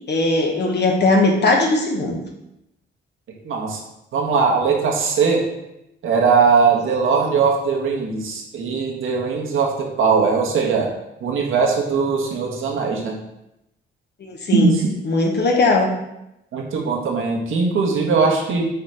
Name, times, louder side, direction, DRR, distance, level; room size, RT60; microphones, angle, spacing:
voice 1, 0.1-2.2 14.2-14.7 15.0-15.9, left 2 dB, 55° left, 1 dB, 1.4 m, -18 dB
voice 2, 3.4-3.8 4.1-5.4 6.0-10.9 11.2-13.1 14.5-14.9 16.5-18.7, right 5 dB, 75° right, -1 dB, 1.5 m, -20 dB
5.8 x 4.1 x 4.4 m, 0.87 s
cardioid pair, 75°, 21 cm